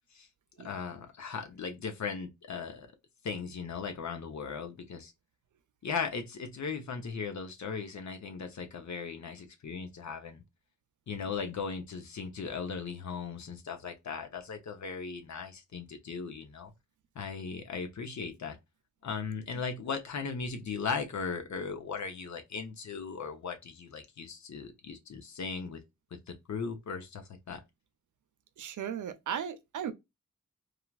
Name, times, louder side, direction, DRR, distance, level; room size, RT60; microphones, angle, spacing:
voice 1, 0.6-2.9 3.2-5.1 5.8-10.4 11.1-16.7 17.1-18.6 19.0-25.8 26.1-27.6, left 5 dB, 65° left, 0.8 m, -38 dB
voice 2, 28.6-29.9, right 9 dB, 80° right, 0.6 m, -36 dB
3.2 x 2.3 x 2.3 m
cardioid pair, 80°, 30 cm